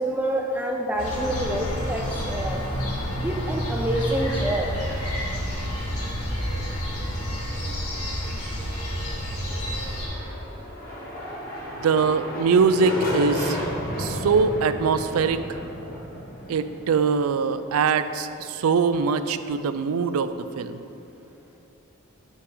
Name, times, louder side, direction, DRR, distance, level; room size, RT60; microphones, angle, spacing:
voice 1, 0.0-2.6 3.2-5.1, right 1 dB, 10° right, 0 dB, 0.4 m, -27 dB
sound 1, 1.0-10.1, equal, 85° left, 1.7 m, -29 dB
sound 2, 9.8-17.6, equal, 45° left, 1.6 m, -32 dB
voice 2, 11.8-13.6 14.0-15.4 16.5-20.3 20.6-20.8, right 5 dB, 70° right, 12 dB, 0.4 m, -22 dB
9.3 x 5.8 x 3.8 m, 2.9 s
head